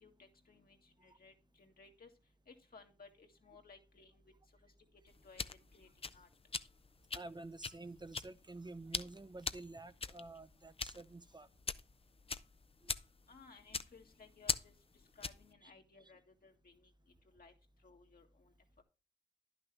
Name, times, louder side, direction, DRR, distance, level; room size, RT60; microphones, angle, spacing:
voice 1, 0.0-2.1 2.5-4.2 5.2-5.4 5.7-5.9 6.1-6.3 13.3-14.7 15.2-16.9 17.3-17.5 17.8-18.5 18.8-18.9, left 4 dB, 65° left, 1.8 m, -60 dB
sound 1, 5.1-15.5, left 4 dB, 35° left, 0.5 m, -43 dB
voice 2, 7.1-11.5 12.8-12.9 15.6-15.7, right 2 dB, 25° right, 0.6 m, -50 dB
10.5 x 6.1 x 3.3 m
cardioid pair, 45°, 17 cm